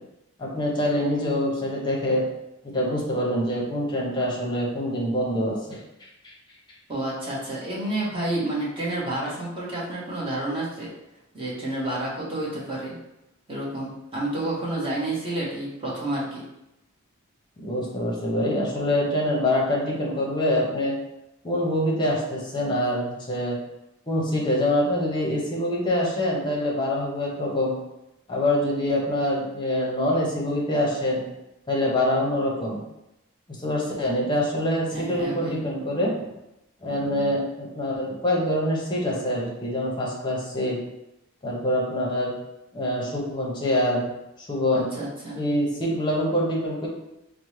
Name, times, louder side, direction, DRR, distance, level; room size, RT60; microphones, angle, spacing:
voice 1, 0.4-2.3 2.6-5.8 6.2-6.3 17.6-21.0 21.4-23.6 24.1-27.8 28.3-31.2 31.7-32.8 33.6-36.2 36.8-40.8 41.4-42.3 42.7-44.1 44.5-44.9 45.3-46.9, left 1 dB, 20° left, -3 dB, 0.8 m, -25 dB
voice 2, 6.9-10.9 11.3-13.0 13.5-16.5 34.9-35.6 44.7-45.4, right 1 dB, 25° right, -6 dB, 1.0 m, -30 dB
4.2 x 2.1 x 3.1 m, 0.90 s
head